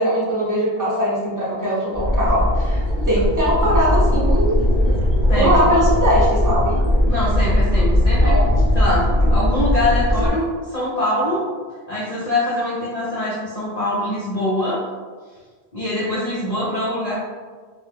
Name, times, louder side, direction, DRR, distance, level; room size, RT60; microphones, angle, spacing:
voice 1, 0.0-4.6 5.3-6.8 8.2-8.6, equal, 20° right, -8 dB, 0.6 m, -20 dB
sound 1, 1.9-10.3, left 1 dB, 30° left, 0.8 m, -18 dB
voice 2, 5.3-5.7 7.1-8.4 8.8-11.5 11.9-14.8 15.7-17.2, left 1 dB, 50° left, -8 dB, 0.5 m, -23 dB
2.2 x 2.1 x 3.2 m, 1.5 s
omnidirectional pair, 1.1 m